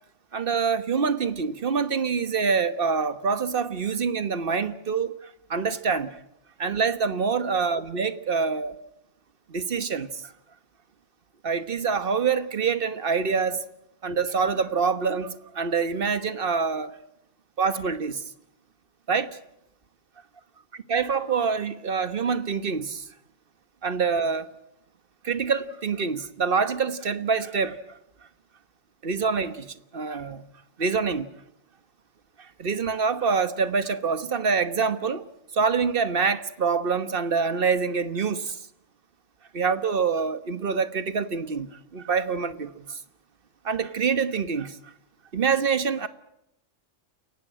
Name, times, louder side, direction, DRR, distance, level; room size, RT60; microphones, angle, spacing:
voice 1, 0.3-6.2 6.6-8.8 9.5-10.3 11.4-13.6 14.0-17.0 17.6-18.2 19.1-19.4 20.9-23.0 23.8-24.5 25.2-27.8 29.0-30.4 30.8-31.3 32.4-35.2 35.5-38.6 39.5-43.0 43.6-44.8 45.3-46.1, right 5 dB, 50° right, 1.4 m, -26 dB
30.0 x 16.5 x 8.8 m
omnidirectional pair, 1.3 m